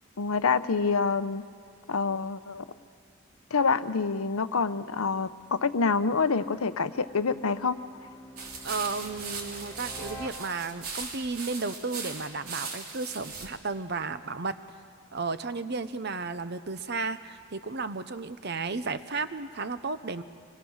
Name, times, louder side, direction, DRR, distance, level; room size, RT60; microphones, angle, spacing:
voice 1, 0.2-1.4 1.9-2.7 3.5-7.8, left 4 dB, 80° left, 12 dB, 0.8 m, -27 dB
sound 1, 4.8-11.0, equal, 15° left, 1.4 m, -49 dB
sound 2, 8.4-13.5, right 4 dB, 85° right, 3.0 m, -39 dB
voice 2, 8.6-14.6 15.1-20.2, right 4 dB, 50° right, 12 dB, 0.8 m, -33 dB
25.5 x 21.5 x 6.4 m, 2.2 s
head